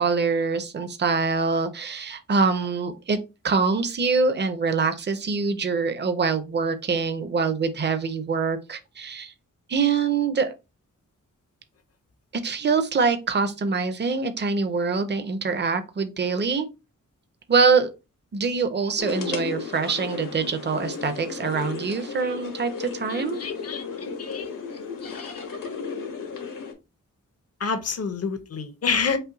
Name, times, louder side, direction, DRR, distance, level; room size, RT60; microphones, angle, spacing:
voice 1, 0.0-3.2 3.4-9.3 9.7-10.5 12.4-16.7 17.5-17.9 18.3-23.4, right 4 dB, 35° right, 0.6 m, -24 dB
sound 1, 19.0-26.7, left 5 dB, 80° left, 1.4 m, -34 dB
voice 2, 23.1-24.5 25.0-25.4 27.6-29.2, left 5 dB, 50° left, 0.7 m, -29 dB
5.5 x 2.1 x 3.9 m
wide cardioid pair, 175°, 32 cm